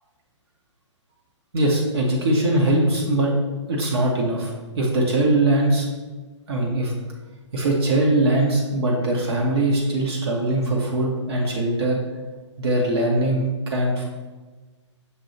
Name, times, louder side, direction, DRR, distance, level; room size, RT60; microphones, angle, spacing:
voice 1, 1.5-3.3 3.7-5.9 6.5-6.9 7.5-12.0 12.6-14.0, right 1 dB, 55° right, -2 dB, 0.8 m, -21 dB
6.6 x 2.7 x 2.7 m, 1.3 s
figure-of-eight pair, 120°, 16 cm